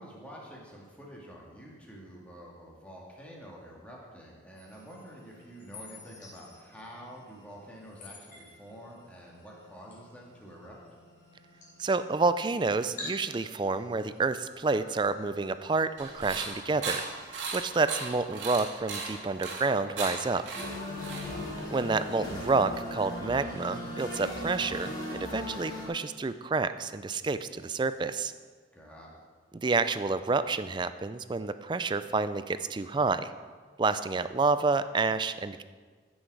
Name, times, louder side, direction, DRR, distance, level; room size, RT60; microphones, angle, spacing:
voice 1, 0.0-10.8 21.0-21.3 28.7-29.2, equal, 5° left, -3 dB, 1.9 m, -48 dB
sound 1, 4.5-17.9, left 2 dB, 45° left, 3.5 m, -51 dB
voice 2, 11.8-17.0 17.5-20.4 21.7-28.3 29.5-33.3 33.8-35.6, right 3 dB, 25° right, 13 dB, 0.3 m, -29 dB
sound 2, 16.0-21.7, right 4 dB, 90° right, 2.0 m, -37 dB
sound 3, 20.6-25.9, left 1 dB, 25° left, 2.2 m, -37 dB
15.0 x 6.4 x 4.8 m, 1.5 s
head